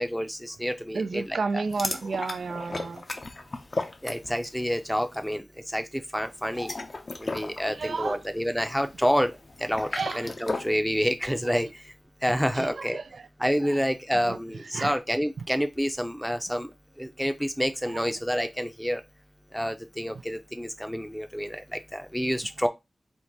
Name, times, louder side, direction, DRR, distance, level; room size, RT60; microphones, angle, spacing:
voice 1, 0.0-1.6 4.0-5.4 5.7-6.7 7.2-9.3 9.6-11.7 12.2-13.0 13.4-16.7 17.0-19.0 19.5-22.7, equal, ahead, 0.5 m, -28 dB
voice 2, 0.9-3.0 7.7-8.2 9.9-10.2 12.5-13.0 14.1-14.4 14.7-14.9 17.9-18.0, right 4 dB, 85° right, 0.3 m, -31 dB
sound 1, 1.7-4.6 4.9-5.2 6.4-10.8, left 2 dB, 45° left, 0.5 m, -35 dB
4.5 x 2.1 x 3.9 m
wide cardioid pair, 95°, 0 cm